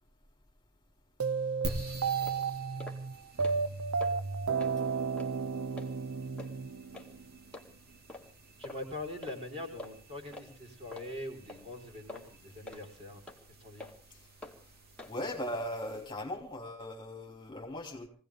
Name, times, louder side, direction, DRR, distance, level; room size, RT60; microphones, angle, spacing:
sound 1, 1.2-7.4, right 5 dB, 70° right, 0.7 m, -33 dB
sound 2, 1.6-16.4, right 1 dB, 45° right, 2.6 m, -49 dB
sound 3, 1.7-1.8 2.2-2.4 2.8-3.0 3.3-3.7 4.0-4.1 4.6-4.8 5.2-5.3 5.8-5.9 6.4-6.5 6.9-7.1 7.5-7.7 8.1-8.3 8.6-8.8 9.2-9.4 9.8-9.9 10.3-10.5 10.9-11.1 11.5-11.6 12.1-12.3 12.7-12.8 13.3-13.4 13.8-13.9 14.4-14.6 15.0-15.1, left 2 dB, 5° left, 2.5 m, -46 dB
voice 1, 8.6-13.2 13.6-13.9, left 1 dB, 30° right, 3 dB, 4.4 m, -43 dB
voice 2, 15.1-18.1, left 1 dB, 20° left, 2 dB, 3.0 m, -38 dB
23.0 x 17.0 x 3.7 m, 0.38 s
head